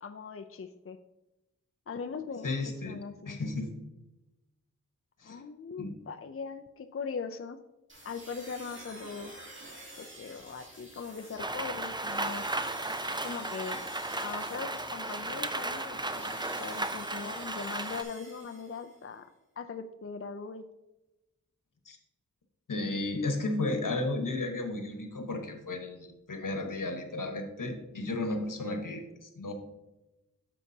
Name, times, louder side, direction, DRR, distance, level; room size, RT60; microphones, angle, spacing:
voice 1, 0.0-1.0 1.9-3.4 5.2-7.6 8.0-9.3 10.0-12.5 13.2-13.8 14.2-19.3 19.6-20.6, left 5 dB, 45° left, 7 dB, 0.5 m, -40 dB
voice 2, 2.4-3.0 3.3-3.7 5.2-5.4 5.8-5.9 21.8-22.0 22.7-29.5, left 2 dB, 80° left, 5 dB, 1.3 m, -33 dB
sound 1, 7.9-19.1, right 1 dB, 40° right, 2.4 m, -49 dB
Rain, 11.4-18.0, right 2 dB, 15° right, 0.5 m, -35 dB
9.8 x 7.2 x 2.8 m, 0.99 s
wide cardioid pair, 70°, 31 cm